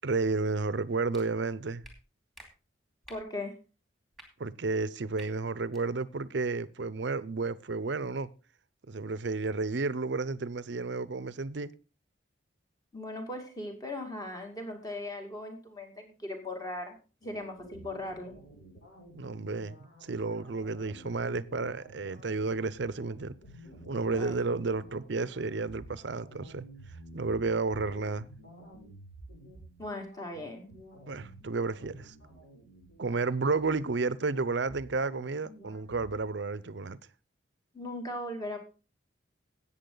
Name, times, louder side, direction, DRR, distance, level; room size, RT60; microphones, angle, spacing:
voice 1, 0.0-1.8 4.4-8.3 8.9-11.7 19.1-23.4 23.9-26.7 27.1-28.3 31.1-32.1 33.0-37.0, right 3 dB, 65° right, 0.6 m, -32 dB
sound 1, 1.1-1.2 1.8-1.9 2.3-2.5 3.0-3.2 4.1-4.3 5.1-5.3 5.7-5.8, right 1 dB, ahead, 2.5 m, -50 dB
voice 2, 3.1-3.6 12.9-18.3 24.1-24.5 29.8-30.7 37.7-38.6, left 1 dB, 20° left, 2.2 m, -38 dB
sound 2, 17.2-36.2, right 1 dB, 65° left, 7.0 m, -52 dB
13.5 x 8.8 x 3.9 m
head